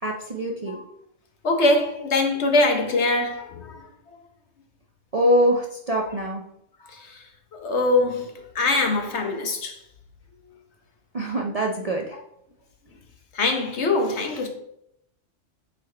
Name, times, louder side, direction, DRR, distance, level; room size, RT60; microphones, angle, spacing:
voice 1, 0.0-0.8 5.1-6.4 11.1-12.2, equal, 40° right, 0.5 m, -24 dB
voice 2, 1.4-3.8 6.8-7.2 7.5-9.8 13.3-14.5, left 2 dB, 60° left, 1.3 m, -23 dB
8.7 x 4.2 x 3.3 m
omnidirectional pair, 1.3 m